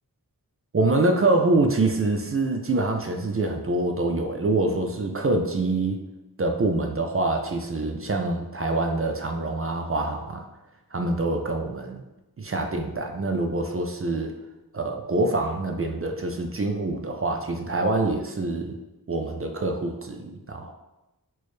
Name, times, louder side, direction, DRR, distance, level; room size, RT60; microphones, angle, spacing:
voice 1, 0.7-6.0 6.4-10.5 10.9-12.0 12.4-14.3 14.7-18.8 19.1-20.7, right 2 dB, 35° right, 3 dB, 0.4 m, -25 dB
4.5 x 2.1 x 3.1 m, 1.0 s
wide cardioid pair, 50°, 38 cm